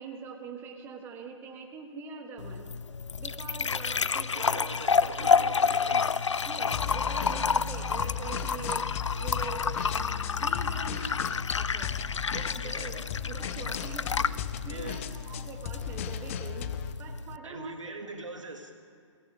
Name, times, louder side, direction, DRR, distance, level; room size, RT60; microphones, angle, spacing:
voice 1, 0.0-2.7 3.2-4.6 5.0-5.7 6.4-8.9 9.2-11.2 11.6-11.9 12.3-16.7 17.0-17.7, right 5 dB, 15° right, 3 dB, 1.6 m, -43 dB
sound 1, 2.4-17.4, left 5 dB, 70° left, 0.6 m, -30 dB
voice 2, 4.3-6.3 12.6-12.9 14.7-15.0 17.4-18.7, right 2 dB, 80° right, 4 dB, 2.3 m, -42 dB
sound 2, 6.7-16.9, left 8 dB, 25° left, 0.7 m, -36 dB
21.5 x 17.5 x 3.8 m, 2.3 s
figure-of-eight pair, 140°, 16 cm